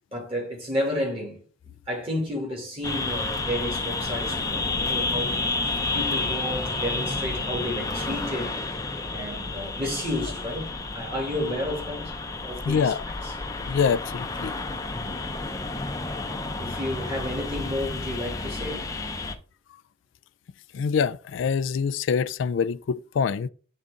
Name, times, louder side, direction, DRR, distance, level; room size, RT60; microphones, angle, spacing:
voice 1, 0.1-1.4 1.7-8.5 9.1-10.7 10.9-12.1 12.4-12.9 13.2-13.3 14.9-15.2 16.6-18.9, left 1 dB, 30° right, 2.7 m, -31 dB
sound 1, 2.8-19.4, left 3 dB, 20° left, 0.6 m, -30 dB
voice 2, 12.7-13.0 13.7-14.5 20.7-23.5, left 6 dB, 85° left, 0.3 m, -25 dB
8.2 x 4.0 x 3.7 m
head